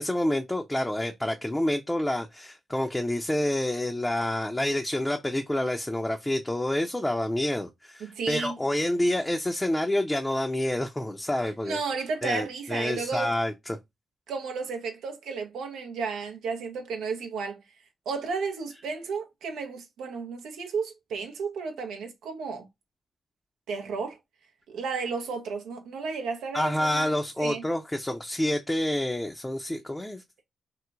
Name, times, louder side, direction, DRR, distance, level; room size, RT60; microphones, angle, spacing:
voice 1, 0.0-11.8 12.2-13.8 26.5-30.2, left 1 dB, 15° left, 0.5 m, -28 dB
voice 2, 8.0-8.5 11.6-13.3 14.3-17.6 18.1-22.7 23.7-24.2 24.7-27.1 27.4-27.6, right 5 dB, 80° right, 0.6 m, -33 dB
3.1 x 2.0 x 2.3 m
hypercardioid pair, 40°, 0 cm